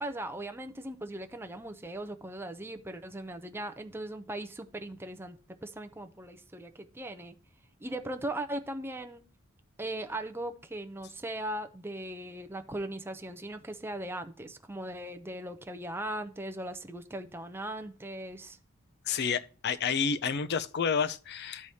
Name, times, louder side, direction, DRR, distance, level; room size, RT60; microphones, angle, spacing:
voice 1, 0.0-7.3 7.8-9.2 9.8-18.6 19.1-19.2, right 1 dB, 10° right, 0.5 m, -39 dB
voice 2, 19.1-21.7, left 6 dB, 55° left, 0.5 m, -30 dB
13.0 x 4.8 x 2.7 m
head